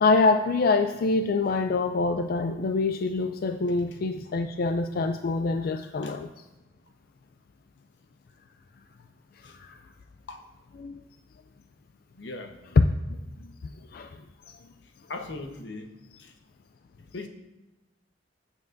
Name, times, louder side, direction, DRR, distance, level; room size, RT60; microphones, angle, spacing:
voice 1, 0.0-6.3 9.5-9.8 10.8-11.0 13.9-14.1 14.5-14.6, left 3 dB, 55° left, 8 dB, 0.4 m, -25 dB
voice 2, 3.6-4.3 6.0-6.2 9.4-9.6 10.3-10.4 12.1-12.6 15.1-15.9 16.2-16.3 17.1-17.3, left 2 dB, 85° left, 5 dB, 1.1 m, -40 dB
15.0 x 7.3 x 2.6 m, 1.1 s
head